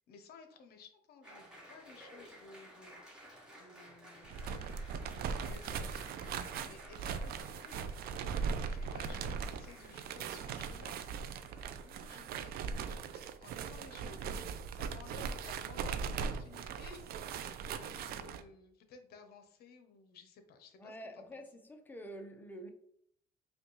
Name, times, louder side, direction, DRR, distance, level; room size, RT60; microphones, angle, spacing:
voice 1, 0.1-7.8 8.7-11.0 11.8-14.3 14.7-21.3, left 4 dB, 65° left, 0.7 m, -57 dB
Applause, 1.2-12.6, equal, 5° right, 1.4 m, -56 dB
sound 1, 4.2-18.4, right 6 dB, 65° right, 0.4 m, -39 dB
voice 2, 20.8-22.7, equal, 10° left, 0.6 m, -47 dB
5.0 x 2.3 x 3.0 m
cardioid pair, 110°, 17 cm